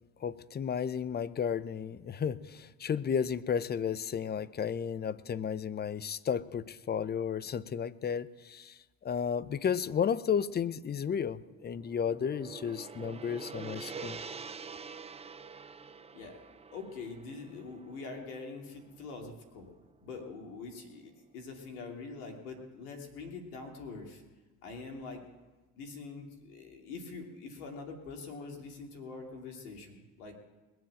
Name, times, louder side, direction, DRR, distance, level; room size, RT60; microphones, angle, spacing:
voice 1, 0.2-14.2, left 7 dB, 20° left, 0.7 m, -33 dB
Gong, 11.4-19.7, right 5 dB, 15° right, 0.6 m, -46 dB
voice 2, 16.7-19.7 20.0-24.2 24.6-25.2 25.8-30.4, left 4 dB, 75° left, 2.9 m, -44 dB
21.0 x 7.7 x 7.8 m
hypercardioid pair, 70°, 45 cm